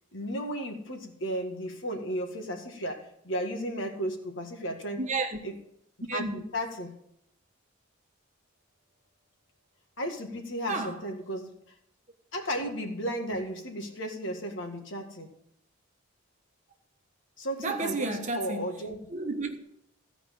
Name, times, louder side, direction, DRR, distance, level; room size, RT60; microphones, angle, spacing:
voice 1, 0.1-5.0 5.4-5.5 6.1-7.0 10.0-11.5 12.3-15.3 17.4-19.0, equal, 65° left, 1.9 m, -34 dB
voice 2, 5.0-5.4 6.1-6.4 10.7-11.0 17.6-18.7 19.1-19.6, right 3 dB, 35° right, 1.2 m, -31 dB
15.0 x 5.1 x 7.5 m
head